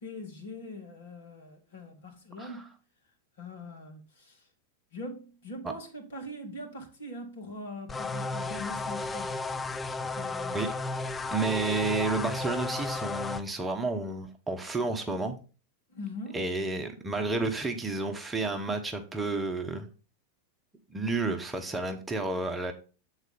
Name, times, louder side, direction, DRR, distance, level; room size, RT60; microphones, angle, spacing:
voice 1, 0.0-2.7 3.4-4.4 4.9-9.3 10.1-10.6 15.9-16.4, left 1 dB, 60° left, 2.0 m, -42 dB
sound 1, 7.9-13.4, left 3 dB, 15° left, 0.4 m, -33 dB
voice 2, 11.3-15.3 16.3-19.9 20.9-22.7, right 3 dB, 10° right, 1.0 m, -31 dB
7.9 x 4.1 x 5.2 m
figure-of-eight pair, 90°, 0 cm